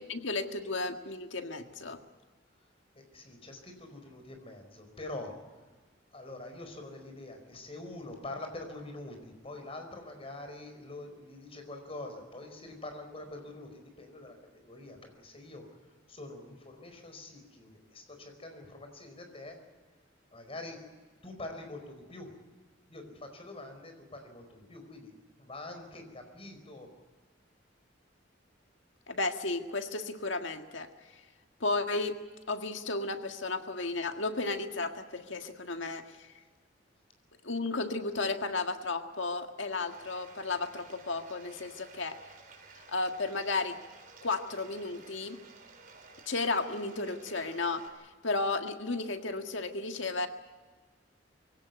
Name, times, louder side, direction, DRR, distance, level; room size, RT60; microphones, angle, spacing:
voice 1, 0.1-2.0 29.1-30.9 31.6-32.1 32.5-36.3 37.4-42.2 42.9-43.8 44.2-45.4 46.3-47.8 48.2-50.3, left 3 dB, 75° left, 6 dB, 1.8 m, -33 dB
voice 2, 2.9-5.3 6.1-19.6 20.3-20.8 21.2-22.4 22.9-25.1 25.4-26.9, left 2 dB, 30° left, 5 dB, 4.8 m, -45 dB
Bathtub (filling or washing), 39.9-47.9, right 4 dB, 45° right, 3.9 m, -54 dB
23.5 x 17.0 x 9.5 m, 1.4 s
head